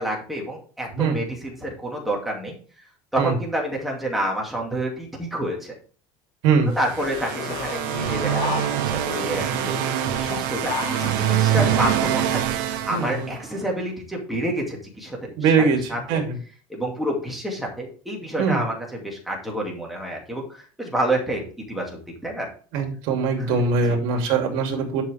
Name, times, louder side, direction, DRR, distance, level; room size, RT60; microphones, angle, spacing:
voice 1, 0.0-2.5 3.1-5.7 6.7-9.8 10.2-12.2 12.5-16.2 16.7-20.4 20.8-21.4 21.7-22.5 23.4-24.0, right 1 dB, ahead, -2 dB, 2.4 m, -29 dB
sound 1, 6.7-13.6, right 11 dB, 80° right, 1.2 m, -25 dB
sound 2, 7.0-12.4, left 4 dB, 50° left, 3.4 m, -33 dB
voice 2, 12.9-13.3 15.4-15.8 16.1-16.4 18.4-18.6 22.7-25.0, right 5 dB, 60° right, 3 dB, 2.6 m, -21 dB
11.0 x 6.0 x 3.4 m, 0.40 s
cardioid pair, 170°, 10 cm